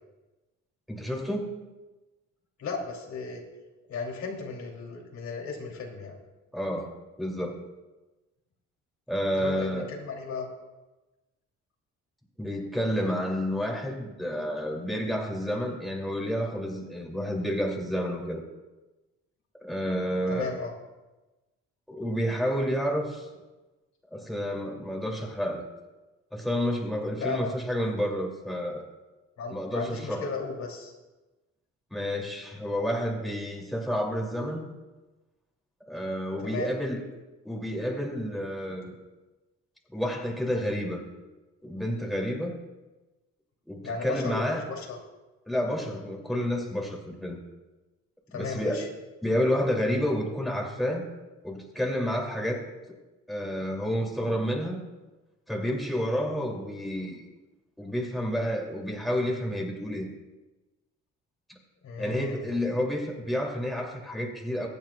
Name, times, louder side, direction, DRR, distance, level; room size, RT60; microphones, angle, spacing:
voice 1, 0.9-1.5 6.5-6.9 7.2-7.6 9.1-9.9 12.4-18.4 19.6-20.5 21.9-23.3 24.1-25.6 26.3-28.9 29.5-30.3 31.9-34.7 35.9-37.0 37.4-38.9 39.9-41.0 41.6-42.6 43.7-44.7 45.5-47.4 48.3-48.9 49.2-51.0 51.4-53.0 53.3-54.8 55.5-57.2 57.8-60.1 62.0-64.7, equal, ahead, -1 dB, 2.7 m, -30 dB
voice 2, 2.6-3.4 3.9-6.2 9.4-10.5 20.3-20.7 27.2-27.5 29.4-30.9 36.4-36.7 43.8-45.0 48.3-48.9 61.8-62.4, left 4 dB, 65° left, -1 dB, 3.1 m, -35 dB
23.0 x 8.7 x 2.4 m, 1.1 s
cardioid pair, 90°, 30 cm